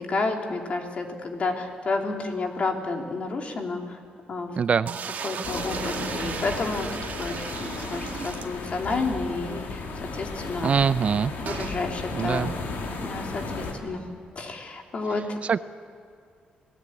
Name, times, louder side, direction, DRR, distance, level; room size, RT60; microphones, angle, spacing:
voice 1, 0.0-4.0 4.3-4.6 5.2-6.9 7.2-9.8 10.1-10.7 11.4-12.5 13.0-14.1 14.3-15.4, left 3 dB, 45° left, 3 dB, 3.0 m, -30 dB
voice 2, 4.6-4.9 10.6-11.3 12.1-12.5 15.4-15.6, right 6 dB, 45° right, 14 dB, 0.6 m, -23 dB
sound 1, 4.9-9.0 9.4-9.5 9.7-9.8 11.5-11.8, right 7 dB, 60° right, 1.8 m, -35 dB
sound 2, 5.4-13.7, left 3 dB, 80° left, 3.7 m, -35 dB
28.0 x 18.0 x 8.7 m, 2.3 s
cardioid pair, 125°, 3 cm